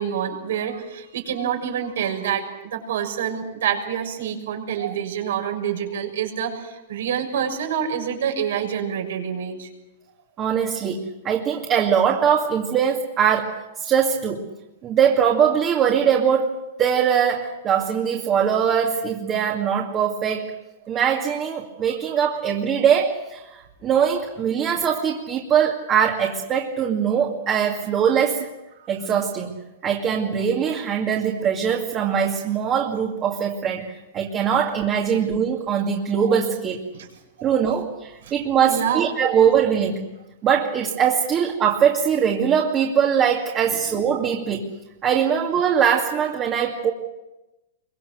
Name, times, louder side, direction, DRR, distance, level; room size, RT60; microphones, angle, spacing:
voice 1, 0.0-9.7 28.8-28.9 36.3-36.4 37.4-37.5 38.2-38.3 38.6-39.1, right 8 dB, 80° right, 3 dB, 6.5 m, -27 dB
voice 2, 10.4-14.5 14.8-20.4 20.9-28.5 28.9-29.6 29.8-36.8 37.4-40.0 40.4-44.7 45.0-46.9, right 8 dB, 25° right, -1 dB, 2.4 m, -21 dB
26.0 x 24.0 x 6.6 m, 0.99 s
supercardioid pair, 155°, 0 cm